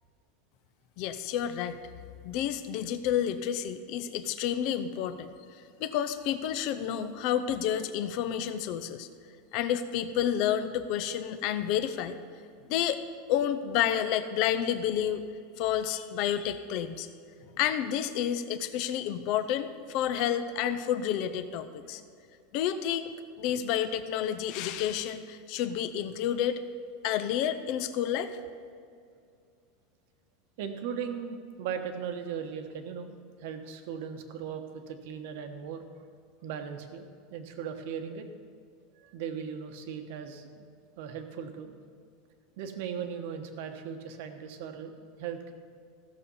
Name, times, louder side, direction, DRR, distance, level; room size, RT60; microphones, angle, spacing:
voice 1, 1.0-1.9 2.2-5.3 5.8-9.1 9.5-12.2 12.7-13.0 13.3-15.2 15.6-17.1 17.6-22.0 22.5-26.6 27.0-28.3, left 10 dB, 40° left, 10 dB, 0.6 m, -30 dB
voice 2, 30.6-35.8 36.4-37.0 37.3-38.3 39.0-40.7 41.0-41.7 42.6-45.5, right 7 dB, 55° right, 6 dB, 1.1 m, -38 dB
15.5 x 6.8 x 5.6 m, 2.3 s
supercardioid pair, 175°, 0 cm